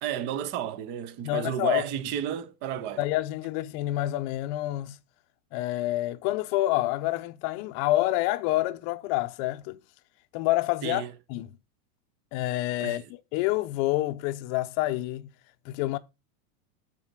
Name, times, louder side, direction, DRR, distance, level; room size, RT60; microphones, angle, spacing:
voice 1, 0.0-3.0 10.8-11.1 12.8-13.1, right 10 dB, 25° right, 0.5 m, -32 dB
voice 2, 1.2-1.8 3.0-5.0 5.5-9.8 10.3-11.5 12.3-15.3 15.6-16.0, left 16 dB, 35° left, 0.6 m, -28 dB
7.4 x 4.1 x 6.5 m
supercardioid pair, 150°, 49 cm